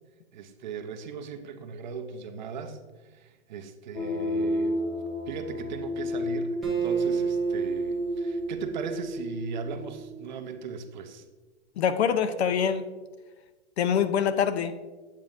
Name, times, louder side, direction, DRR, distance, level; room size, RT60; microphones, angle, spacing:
voice 1, 0.3-4.8 5.3-11.2, right 6 dB, 40° right, 7 dB, 0.6 m, -38 dB
sound 1, 3.9-10.5, left 2 dB, 20° left, 0.4 m, -33 dB
Acoustic guitar, 6.6-10.0, right 5 dB, ahead, 0.9 m, -30 dB
voice 2, 11.8-12.9 13.8-14.7, left 7 dB, 65° left, 12 dB, 0.6 m, -24 dB
8.3 x 7.1 x 2.6 m, 1.3 s
hypercardioid pair, 165°, 35 cm